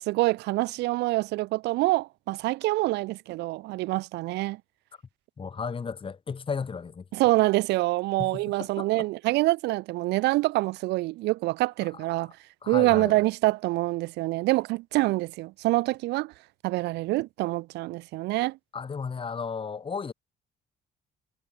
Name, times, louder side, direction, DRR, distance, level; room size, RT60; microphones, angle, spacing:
voice 1, 0.0-4.6 7.1-12.3 12.7-16.3 16.6-18.6, right 20 dB, 90° right, 3.9 m, -26 dB
voice 2, 5.4-7.0 8.2-9.1 12.6-13.1 18.7-20.1, left 5 dB, 30° left, 7.2 m, -34 dB
cardioid pair, 110°, 17 cm